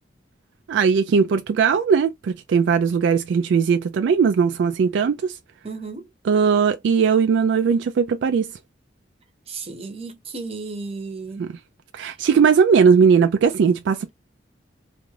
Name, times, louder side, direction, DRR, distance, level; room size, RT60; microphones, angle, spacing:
voice 1, 0.7-5.4 6.2-8.5 11.4-11.6 11.9-14.1, right 6 dB, 70° right, 0.3 m, -19 dB
voice 2, 5.6-6.0 9.5-11.5, right 4 dB, 30° right, 0.7 m, -34 dB
2.5 x 2.3 x 3.1 m
head